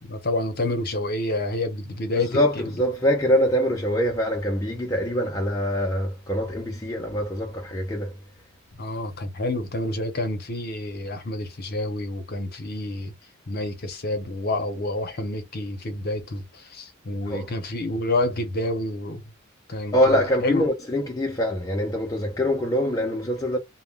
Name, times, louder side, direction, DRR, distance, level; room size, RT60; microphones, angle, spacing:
voice 1, 0.0-2.6 8.8-13.1 13.5-19.2 19.7-20.7, left 2 dB, 45° left, 0.7 m, -28 dB
voice 2, 2.1-8.1 17.3-17.5 19.9-23.6, equal, 15° left, 0.4 m, -24 dB
2.1 x 2.1 x 3.5 m
head